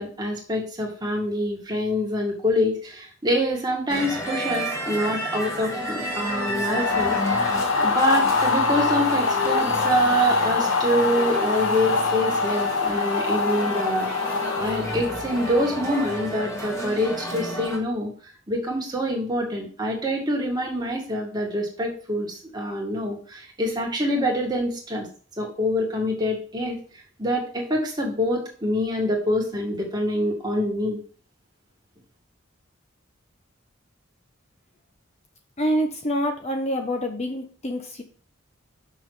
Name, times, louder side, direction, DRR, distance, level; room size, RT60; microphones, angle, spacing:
voice 1, 0.0-14.1 14.6-18.1 18.5-25.1 25.4-26.8 27.2-31.0, equal, 20° right, -1 dB, 2.0 m, -26 dB
sound 1, 3.9-17.8, equal, 15° left, 2.0 m, -31 dB
sound 2, 6.6-15.7, left 4 dB, 70° left, 1.0 m, -24 dB
voice 2, 35.6-38.0, equal, 30° left, 3 dB, 1.0 m, -26 dB
6.4 x 6.1 x 4.9 m, 0.41 s
head